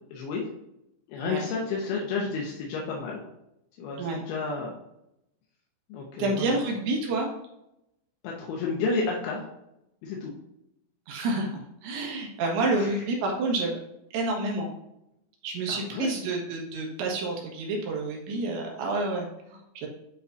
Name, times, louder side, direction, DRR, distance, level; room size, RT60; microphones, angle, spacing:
voice 1, 0.1-0.5 1.1-3.2 3.8-4.7 5.9-6.6 8.2-9.4 10.0-10.3 12.8-12.9 15.7-16.1, left 4 dB, 75° left, -2 dB, 2.4 m, -31 dB
voice 2, 6.2-7.3 11.1-11.5 11.8-13.8 14.1-14.7 15.4-19.9, right 2 dB, 75° right, -1 dB, 3.5 m, -29 dB
9.3 x 4.8 x 2.7 m, 0.84 s
omnidirectional pair, 5.6 m